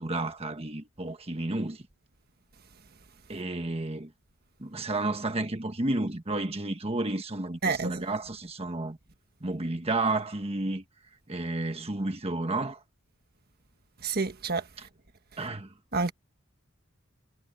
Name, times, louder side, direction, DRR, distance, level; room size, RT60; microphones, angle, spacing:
voice 1, 0.0-1.9 3.3-4.1 4.6-9.0 9.4-10.8 11.3-12.8 15.4-15.7, right 2 dB, 30° right, 1.3 m, -31 dB
voice 2, 7.6-8.0 14.0-14.7 15.9-16.1, right 4 dB, 45° right, 1.5 m, -28 dB
head